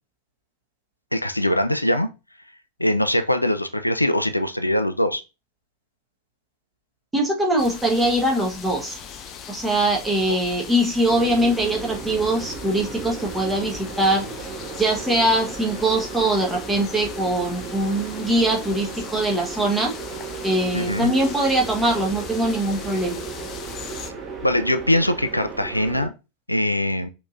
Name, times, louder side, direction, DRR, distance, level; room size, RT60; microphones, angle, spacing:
voice 1, 1.1-2.1 2.8-5.2 20.7-21.1 24.4-26.1 26.5-27.1, left 1 dB, 85° left, 0.4 m, -22 dB
voice 2, 7.1-9.0 9.5-14.5 14.8-19.9 20.4-23.2, right 1 dB, 10° right, 1.2 m, -22 dB
sound 1, 7.6-24.1, left 7 dB, 30° left, 0.6 m, -39 dB
sound 2, 11.1-26.1, right 5 dB, 25° right, 1.4 m, -35 dB
5.1 x 3.0 x 2.5 m
figure-of-eight pair, 90°, 0 cm